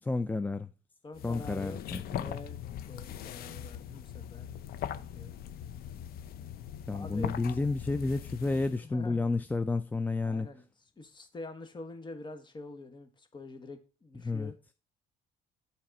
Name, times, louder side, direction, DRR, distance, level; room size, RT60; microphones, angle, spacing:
voice 1, 0.0-0.7 1.2-2.2 6.9-10.5 14.2-14.5, left 3 dB, 10° left, 0.3 m, -31 dB
voice 2, 1.0-2.6 2.9-4.5 4.9-5.3 6.9-7.3 8.8-9.2 10.2-10.6 11.0-14.5, left 2 dB, 25° left, 1.3 m, -46 dB
sound 1, 1.1-8.8, left 10 dB, 65° left, 0.6 m, -41 dB
8.8 x 4.2 x 5.3 m
cardioid pair, 110°, 17 cm